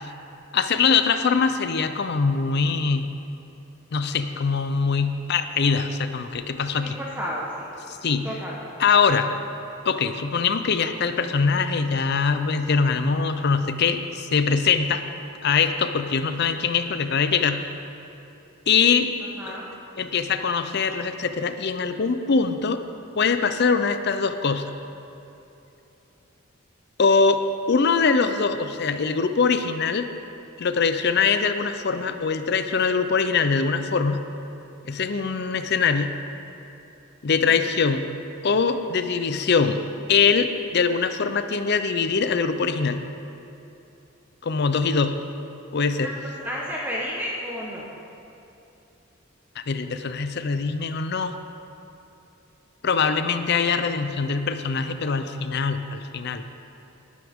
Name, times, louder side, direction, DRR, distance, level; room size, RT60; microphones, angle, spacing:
voice 1, 0.5-3.1 3.9-7.0 7.9-8.3 8.8-9.3 9.8-15.0 15.4-17.6 18.7-19.1 19.5-19.6 20.0-22.8 23.2-24.6 27.0-27.4 27.7-30.1 30.6-34.2 34.9-36.1 37.2-38.1 38.4-39.8 40.1-43.0 44.4-45.2 45.7-46.1 49.6-51.4 52.8-56.4, left 5 dB, 55° left, 9 dB, 0.6 m, -22 dB
voice 2, 6.8-7.7 8.2-8.8 19.4-19.7 46.0-47.9, equal, 10° right, -5 dB, 1.1 m, -32 dB
19.0 x 9.4 x 3.6 m, 2.9 s
head